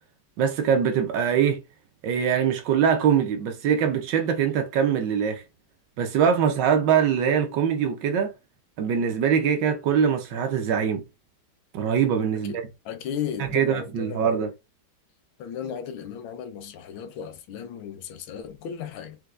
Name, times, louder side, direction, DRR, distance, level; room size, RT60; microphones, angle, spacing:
voice 1, 0.4-1.6 2.0-5.4 6.0-8.3 8.8-11.0 11.7-12.5 13.5-14.5, right 7 dB, 70° right, 1.1 m, -23 dB
voice 2, 12.8-14.4 15.4-19.2, left 8 dB, 80° left, 1.4 m, -35 dB
4.4 x 2.2 x 2.4 m
omnidirectional pair, 2.2 m